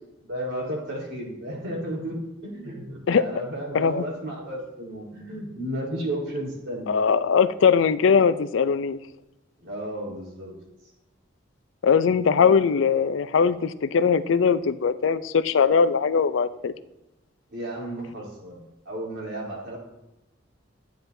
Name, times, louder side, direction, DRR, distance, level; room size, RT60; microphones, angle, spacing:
voice 1, 0.2-2.2 2.4-6.9 9.6-10.6 17.5-19.8, right 1 dB, 85° right, -3 dB, 3.9 m, -33 dB
voice 2, 3.7-4.0 6.9-9.0 11.8-16.7, left 6 dB, 85° left, 14 dB, 0.4 m, -20 dB
12.0 x 9.2 x 2.7 m, 0.92 s
head